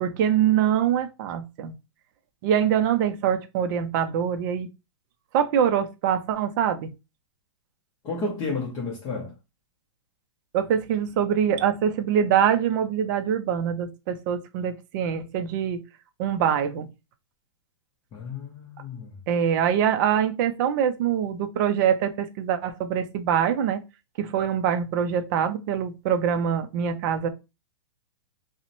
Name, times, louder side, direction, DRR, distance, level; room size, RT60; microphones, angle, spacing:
voice 1, 0.0-1.8 2.4-4.7 5.3-6.9 10.5-15.8 16.2-16.9 19.3-23.8 24.2-27.3, right 8 dB, 40° right, 0.4 m, -24 dB
voice 2, 8.0-9.3 18.1-19.2, left 3 dB, 25° left, 0.6 m, -32 dB
2.7 x 2.1 x 2.5 m
hypercardioid pair, 150°, 15 cm